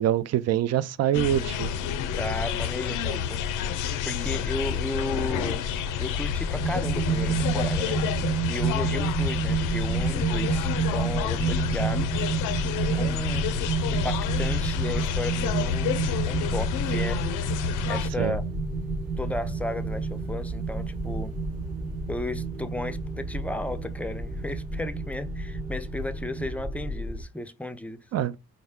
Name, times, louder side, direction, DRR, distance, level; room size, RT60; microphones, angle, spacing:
voice 1, 0.0-1.7 18.2-18.4 28.1-28.4, right 11 dB, 55° right, 0.4 m, -25 dB
sound 1, 1.1-18.1, left 8 dB, 90° left, 0.5 m, -29 dB
voice 2, 2.1-3.4 3.8-5.7 6.0-8.0 8.5-12.3 12.8-13.5 13.9-17.2 17.6-18.4 19.2-21.4 22.1-28.0, left 1 dB, 5° left, 0.4 m, -34 dB
sound 2, 6.6-26.5, right 6 dB, 80° right, 1.2 m, -30 dB
sound 3, 8.5-27.2, equal, 15° right, 0.8 m, -37 dB
4.6 x 2.1 x 3.5 m
cardioid pair, 90°, 30 cm